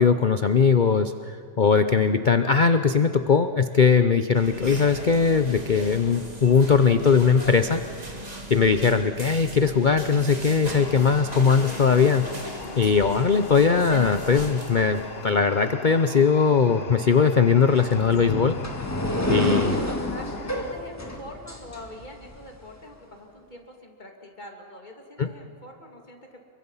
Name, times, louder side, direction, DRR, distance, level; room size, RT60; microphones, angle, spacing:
voice 1, 0.0-7.8 8.5-12.3 12.8-18.6 19.3-19.7 25.2-25.3, left 5 dB, 65° left, 9 dB, 0.4 m, -20 dB
sound 1, 4.3-15.5, right 1 dB, 20° right, 2.8 m, -38 dB
sound 2, 10.8-20.7, left 5 dB, 40° left, 1.1 m, -41 dB
sound 3, 17.7-22.4, left 1 dB, 10° left, 1.8 m, -29 dB
voice 2, 19.6-26.4, left 1 dB, 25° left, 2 dB, 2.7 m, -44 dB
28.5 x 23.5 x 5.7 m, 2.2 s
omnidirectional pair, 1.9 m